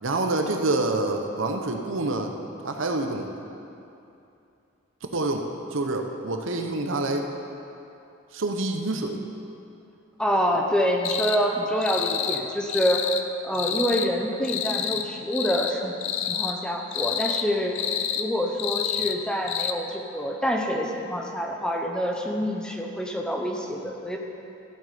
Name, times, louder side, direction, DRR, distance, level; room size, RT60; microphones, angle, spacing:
voice 1, 0.0-2.3 2.6-3.3 5.1-5.5 5.7-7.3 8.3-9.2, right 2 dB, 70° right, 4 dB, 0.9 m, -27 dB
voice 2, 10.2-13.1 13.4-16.0 16.3-17.8 18.2-24.2, equal, 5° left, 1 dB, 0.7 m, -26 dB
sound 1, 11.0-11.4 11.8-12.4 12.7-13.2 13.5-14.1 14.4-15.1 15.3-15.7 16.0-16.5 16.9-17.4 17.8-18.3 18.6-19.2 19.5-19.7, left 9 dB, 60° left, 0.6 m, -28 dB
14.0 x 8.0 x 5.0 m, 2.7 s
head